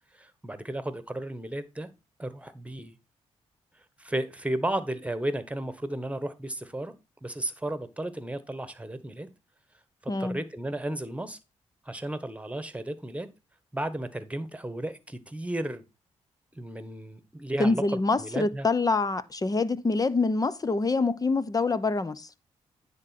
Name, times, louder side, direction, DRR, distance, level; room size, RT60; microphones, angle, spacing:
voice 1, 0.1-1.9 2.2-2.9 4.0-6.9 7.2-9.3 10.0-11.4 11.8-13.3 13.7-15.8 16.5-18.7, right 1 dB, 10° right, 1.5 m, -34 dB
voice 2, 10.1-10.4 17.6-22.3, left 3 dB, 30° left, 0.8 m, -26 dB
9.8 x 3.9 x 6.0 m
cardioid pair, 55°, 12 cm